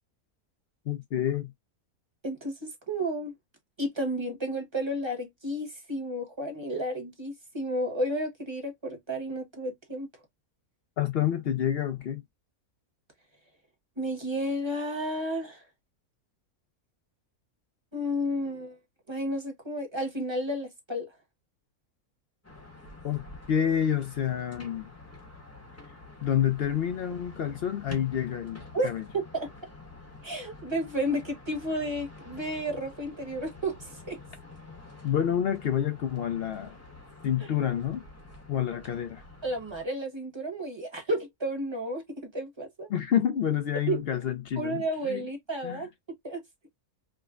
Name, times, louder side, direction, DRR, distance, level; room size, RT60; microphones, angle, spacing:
voice 1, 0.9-1.5 11.0-12.2 23.0-24.9 26.2-29.0 35.0-36.7 37.2-38.0 38.5-39.2 42.9-45.2 45.6-45.8, left 9 dB, 70° left, 0.5 m, -28 dB
voice 2, 2.2-3.3 3.8-10.1 14.0-15.6 17.9-18.8 19.1-21.1 28.7-29.5 30.2-34.2 37.4-37.5 39.4-42.9 43.9-44.0 44.6-45.9 46.2-46.4, equal, 20° right, 1.0 m, -32 dB
sound 1, 22.4-39.9, left 3 dB, 15° left, 0.8 m, -48 dB
4.9 x 2.1 x 2.4 m
omnidirectional pair, 1.6 m